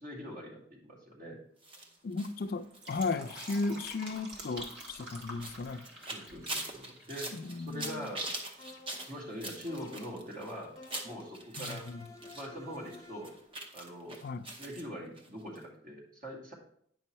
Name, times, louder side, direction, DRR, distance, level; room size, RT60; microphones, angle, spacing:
voice 1, 0.0-1.4 6.1-8.3 9.0-10.7 11.0-11.9 12.3-13.3 13.7-14.2 14.5-16.5, equal, 45° right, -2 dB, 2.1 m, -43 dB
sound 1, 1.6-12.5 12.7-14.8 15.2-15.3 15.6-15.7, right 2 dB, 30° right, 0.9 m, -43 dB
voice 2, 2.0-5.9 7.3-8.1 11.6-12.1 14.2-14.4, left 3 dB, 55° left, 10 dB, 0.4 m, -35 dB
Fill (with liquid), 2.6-7.4 7.6-7.7, right 1 dB, 70° right, 1.6 m, -47 dB
sound 2, 8.6-9.2 9.7-10.3 10.8-11.4 11.9-13.5, left 2 dB, 20° left, 0.7 m, -52 dB
9.1 x 5.4 x 3.1 m, 0.63 s
head